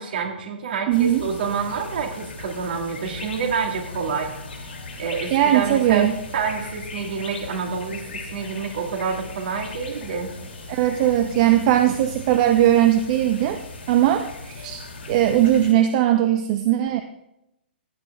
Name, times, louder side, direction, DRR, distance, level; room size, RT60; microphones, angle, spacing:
voice 1, 0.0-4.3 5.0-8.0 8.3-10.3, right 5 dB, 55° right, 4 dB, 2.2 m, -28 dB
sound 1, 0.9-15.7, left 3 dB, 75° left, 3.1 m, -38 dB
voice 2, 0.9-1.3 5.3-6.1 10.7-13.6 13.9-14.8 15.1-17.0, right 12 dB, 40° right, 8 dB, 0.7 m, -19 dB
15.0 x 9.0 x 3.6 m, 0.86 s
figure-of-eight pair, 125°, 6 cm